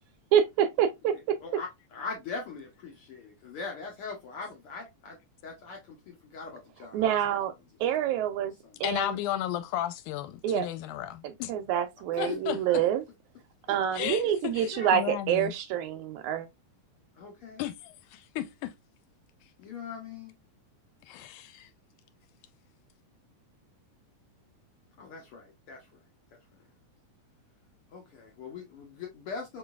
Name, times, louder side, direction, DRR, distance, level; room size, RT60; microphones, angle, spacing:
voice 1, 0.3-1.1 6.9-7.5 7.8-8.5 8.8-9.1 10.4-10.7 11.2-13.0 13.7-16.5, right 9 dB, 80° right, 1.8 m, -27 dB
voice 2, 1.1-5.2 5.4-7.2 8.0-8.1 8.6-8.8 12.2-12.8 13.7-13.8 14.6-14.9 17.2-17.6 19.6-20.4 25.0-25.9 27.9-29.6, left 5 dB, 65° left, 1.4 m, -41 dB
voice 3, 8.8-11.5 12.2-12.6 13.9-15.5 17.6-18.7 21.1-21.7, left 12 dB, 85° left, 2.1 m, -34 dB
4.4 x 3.8 x 2.3 m
omnidirectional pair, 3.6 m